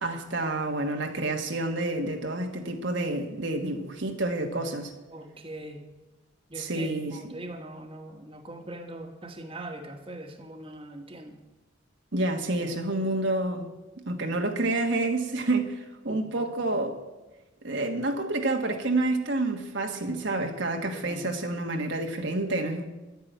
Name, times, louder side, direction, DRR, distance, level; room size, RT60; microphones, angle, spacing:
voice 1, 0.0-4.9 6.6-7.2 12.1-13.7 14.1-17.0 17.6-22.8, right 2 dB, 65° right, 1.5 m, -29 dB
voice 2, 5.1-5.9 6.5-11.4 16.1-16.8 20.9-21.3, right 1 dB, 25° right, 1.6 m, -42 dB
12.5 x 10.5 x 9.3 m
head